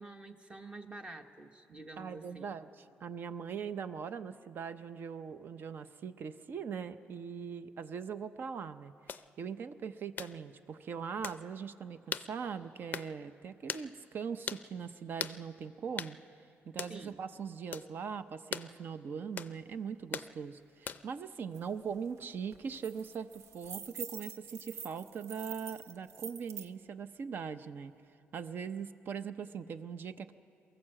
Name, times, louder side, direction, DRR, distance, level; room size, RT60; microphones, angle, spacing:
voice 1, 0.0-2.5 16.9-17.2, right 2 dB, 25° right, 6 dB, 1.1 m, -48 dB
voice 2, 2.0-2.7 3.0-8.9 9.4-16.2 16.7-27.9 28.3-30.3, right 6 dB, 50° right, 12 dB, 0.7 m, -41 dB
sound 1, 9.1-9.3 10.2-10.4 11.2-11.4 12.1-12.3 12.9-13.1 13.7-13.9 14.5-14.7 15.2-15.4 16.0-16.2 16.8-17.0 17.7-17.9 18.5-18.7 19.4-19.6 20.1-20.3 20.9-21.2, left 7 dB, 40° left, 0.5 m, -39 dB
sound 2, 21.5-21.6 22.0-22.2 22.5-26.7, right 7 dB, 80° right, 0.9 m, -46 dB
23.5 x 15.0 x 7.6 m, 2.6 s
cardioid pair, 135°, 5 cm